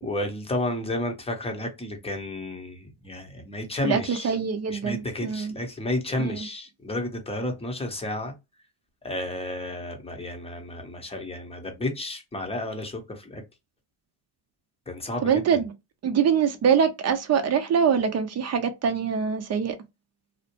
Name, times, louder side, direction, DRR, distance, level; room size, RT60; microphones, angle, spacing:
voice 1, 0.0-4.3 4.7-8.3 9.0-13.4 14.9-15.4, left 1 dB, 10° left, 0.8 m, -32 dB
voice 2, 3.8-5.5 6.2-6.4 15.2-15.7 16.0-19.8, right 7 dB, 35° right, 0.6 m, -24 dB
2.5 x 2.1 x 2.9 m
supercardioid pair, 90°, 48 cm